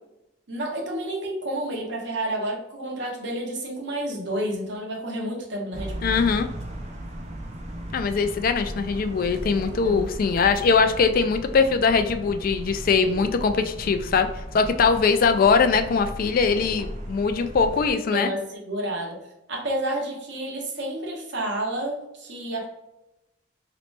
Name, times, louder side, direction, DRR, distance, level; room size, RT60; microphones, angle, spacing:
voice 1, 0.5-6.3 9.8-10.0 13.0-13.3 18.1-19.2 19.5-22.7, right 1 dB, 65° right, 0 dB, 0.9 m, -30 dB
sound 1, 5.7-17.9, right 1 dB, 40° right, 0.6 m, -36 dB
voice 2, 6.0-6.5 7.9-18.3, left 5 dB, 50° left, 9 dB, 0.3 m, -21 dB
3.0 x 3.0 x 3.2 m, 0.91 s
head